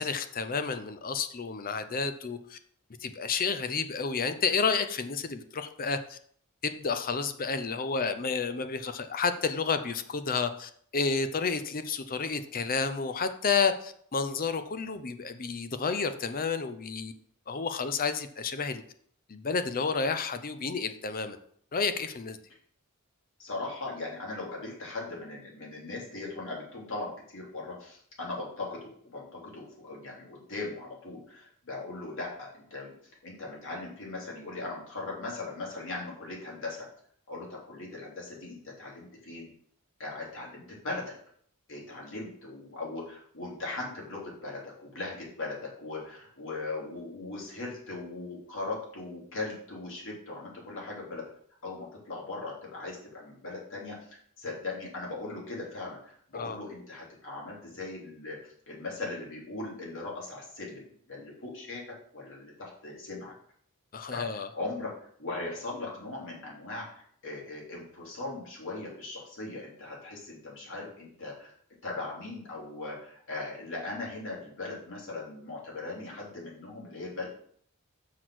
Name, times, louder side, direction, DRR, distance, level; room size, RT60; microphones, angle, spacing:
voice 1, 0.0-2.6 3.0-6.2 6.6-17.1 17.5-18.8 19.3-21.4 21.7-22.4 56.3-56.6 63.9-64.5, left 5 dB, 40° left, 10 dB, 0.7 m, -30 dB
voice 2, 23.4-32.9 33.2-36.9 37.3-39.5 40.0-41.1 41.7-51.2 51.6-58.4 58.7-63.3 64.1-71.5 71.8-77.3, left 2 dB, 60° left, -3 dB, 3.1 m, -39 dB
6.3 x 6.2 x 6.2 m, 0.62 s
head